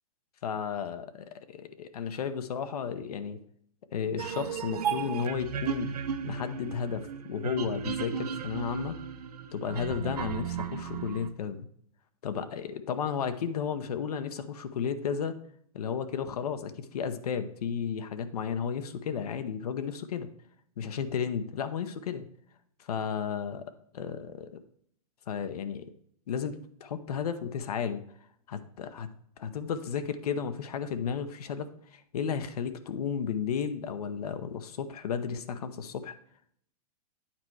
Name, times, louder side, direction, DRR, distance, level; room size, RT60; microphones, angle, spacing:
voice 1, 0.4-3.4 3.9-5.9 6.2-9.0 9.5-11.7 12.2-15.4 15.7-20.3 20.8-22.3 22.8-24.6 25.3-25.9 26.3-28.0 28.5-29.1 29.4-36.1, left 7 dB, 80° left, 9 dB, 0.8 m, -33 dB
sound 1, 4.2-11.3, right 7 dB, 85° right, 0.7 m, -35 dB
8.8 x 4.3 x 4.6 m, 0.66 s
hypercardioid pair, 140°, 19 cm